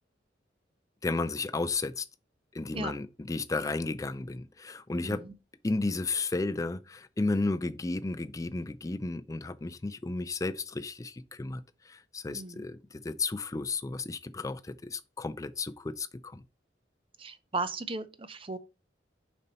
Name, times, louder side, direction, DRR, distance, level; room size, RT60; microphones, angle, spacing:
voice 1, 1.0-2.1 2.5-5.3 5.6-16.4, left 3 dB, 15° left, 0.4 m, -33 dB
voice 2, 5.0-5.3 12.3-12.7 17.2-18.6, right 3 dB, 30° right, 0.6 m, -36 dB
5.4 x 4.1 x 5.4 m
head